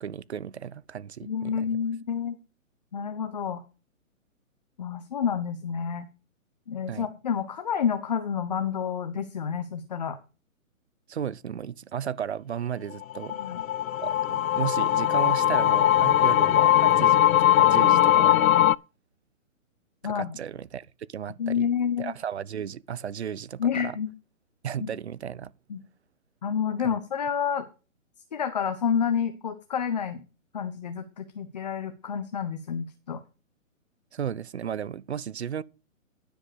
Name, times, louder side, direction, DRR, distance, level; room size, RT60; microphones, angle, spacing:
voice 1, 0.0-1.7 6.9-7.1 11.1-13.3 14.0-18.5 20.0-21.7 22.0-24.0 24.6-25.5 26.8-26.9 34.1-35.6, right 8 dB, 55° right, 0.6 m, -34 dB
voice 2, 1.2-2.4 2.9-3.6 4.8-6.1 6.7-10.2 13.3-13.6 20.0-20.4 21.4-22.1 23.6-24.1 24.8-24.9 25.7-25.8 26.4-27.7 28.3-30.2 30.5-33.2, left 7 dB, 30° left, 0.9 m, -29 dB
sound 1, 13.0-18.8, left 12 dB, 80° left, 0.5 m, -20 dB
10.0 x 7.5 x 5.0 m
hypercardioid pair, 170°, 41 cm